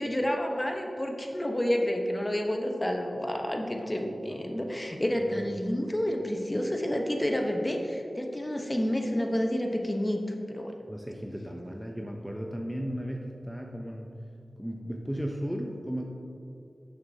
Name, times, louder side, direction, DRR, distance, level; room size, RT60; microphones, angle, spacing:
voice 1, 0.0-10.2 10.5-10.7, equal, 20° left, 2 dB, 0.9 m, -29 dB
voice 2, 10.9-14.1 14.6-16.1, equal, 5° right, 1 dB, 0.6 m, -35 dB
11.0 x 6.5 x 2.8 m, 2.7 s
wide cardioid pair, 60°, 0 cm